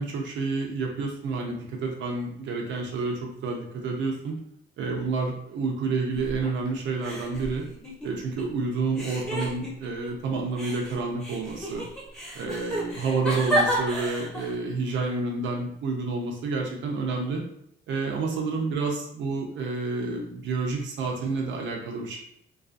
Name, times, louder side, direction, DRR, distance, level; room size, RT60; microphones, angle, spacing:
voice 1, 0.0-4.4 4.8-7.6 8.0-11.9 12.3-17.4 17.9-22.2, right 3 dB, 70° right, 0 dB, 0.6 m, -29 dB
sound 1, 6.1-6.7 7.0-8.4 8.9-10.1 10.6-14.6, right 1 dB, 5° left, 0.8 m, -31 dB
2.3 x 2.3 x 2.5 m, 0.73 s
cardioid pair, 90°, 20 cm